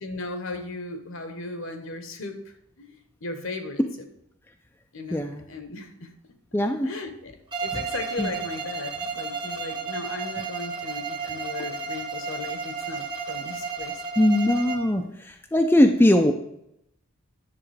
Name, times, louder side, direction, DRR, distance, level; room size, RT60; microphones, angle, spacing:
voice 1, 0.0-2.4 2.8-3.8 4.9-6.1 6.8-14.0, left 2 dB, 60° left, 7 dB, 1.1 m, -36 dB
voice 2, 5.1-5.4 6.5-6.9 8.2-8.3 14.2-16.3, left 1 dB, 10° left, 4 dB, 0.4 m, -20 dB
Bowed string instrument, 7.5-15.0, right 5 dB, 20° right, 1.0 m, -33 dB
10.0 x 7.1 x 3.4 m, 0.79 s
head